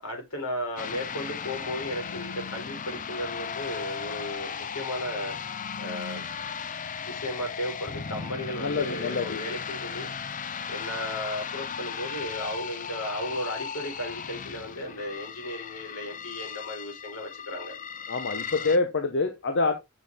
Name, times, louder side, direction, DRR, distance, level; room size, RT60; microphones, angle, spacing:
voice 1, 0.0-5.3 5.8-6.2 7.0-10.1 10.7-17.8, left 1 dB, 75° left, 4.5 m, -35 dB
sound 1, 0.8-18.8, left 6 dB, 35° left, 0.6 m, -36 dB
voice 2, 8.6-9.4 18.1-19.7, left 3 dB, 55° left, 1.0 m, -26 dB
7.5 x 6.3 x 3.5 m
head